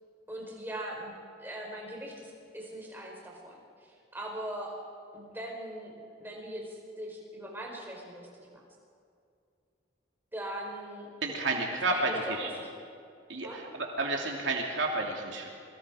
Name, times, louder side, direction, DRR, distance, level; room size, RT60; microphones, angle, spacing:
voice 1, 0.3-1.1 1.4-4.8 5.1-5.9 6.2-8.6 10.3-11.1 11.9-12.7 13.4-13.6, right 1 dB, 10° right, -2 dB, 5.1 m, -40 dB
voice 2, 11.2-12.5 13.3-15.5, right 2 dB, 85° right, 0 dB, 2.9 m, -31 dB
27.5 x 23.0 x 5.0 m, 2.4 s
head